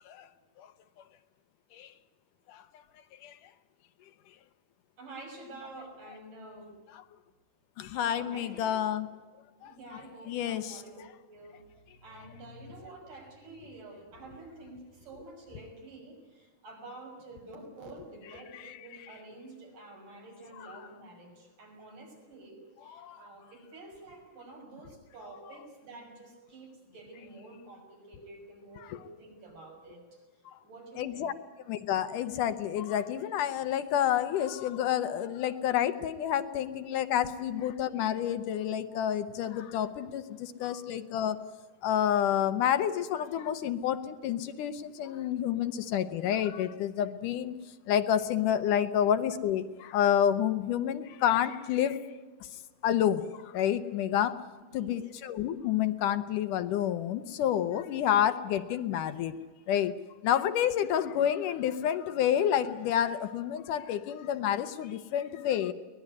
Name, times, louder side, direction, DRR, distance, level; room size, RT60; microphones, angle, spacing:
voice 1, 5.0-6.8 7.9-9.0 9.6-11.0 11.3-11.6 12.0-30.2 30.6-31.3 54.6-55.1, right 2 dB, 65° right, 1 dB, 7.8 m, -49 dB
voice 2, 7.8-9.1 9.6-10.0 10.3-10.8 18.5-18.8 20.6-20.7 22.9-23.2 28.9-29.0 31.0-31.3 31.7-41.4 41.8-47.5 47.9-52.0 52.8-54.4 54.7-59.3 59.7-59.9 60.2-65.7, left 10 dB, 75° left, 10 dB, 2.3 m, -29 dB
22.5 x 19.5 x 9.7 m, 1.3 s
omnidirectional pair, 3.9 m